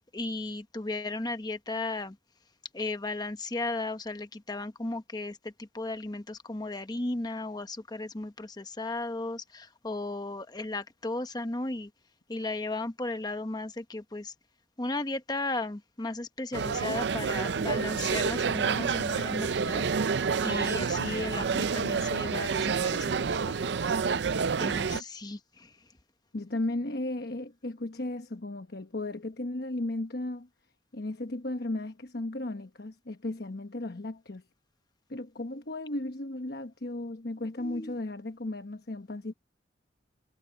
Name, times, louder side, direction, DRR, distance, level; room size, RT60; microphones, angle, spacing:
voice 1, 0.1-2.2 2.7-11.9 12.3-14.3 14.8-19.9 20.4-23.2 24.6-25.7 37.6-38.0, left 2 dB, 20° left, 0.9 m, -35 dB
sound 1, 16.5-25.0, right 5 dB, 60° right, 0.5 m, -28 dB
voice 2, 26.3-30.5 30.9-34.4 35.1-39.3, left 2 dB, 55° left, 1.1 m, -35 dB
head